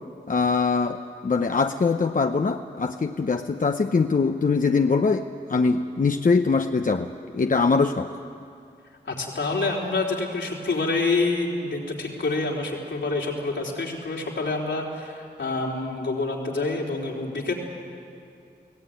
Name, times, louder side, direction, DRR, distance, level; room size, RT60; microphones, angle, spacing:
voice 1, 0.3-8.1, left 4 dB, 45° left, 6 dB, 0.8 m, -23 dB
voice 2, 9.0-17.5, left 3 dB, 80° left, -2 dB, 3.8 m, -27 dB
22.5 x 17.5 x 9.3 m, 2.5 s
cardioid pair, 50°, 19 cm